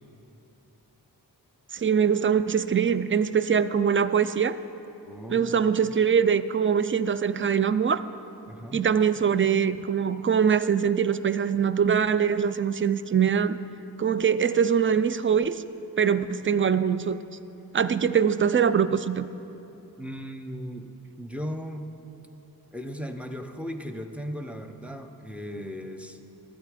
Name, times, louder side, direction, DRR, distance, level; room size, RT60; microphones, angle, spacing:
voice 1, 1.7-4.6 5.3-8.0 8.7-13.6 14.0-15.6 16.0-17.2 17.7-19.3, right 7 dB, 35° right, 14 dB, 0.4 m, -23 dB
voice 2, 5.1-5.7 8.5-8.9 20.0-20.9 21.2-21.9 22.7-26.2, equal, 5° right, 5 dB, 0.7 m, -37 dB
12.0 x 8.2 x 5.0 m, 2.9 s
cardioid pair, 50°, 39 cm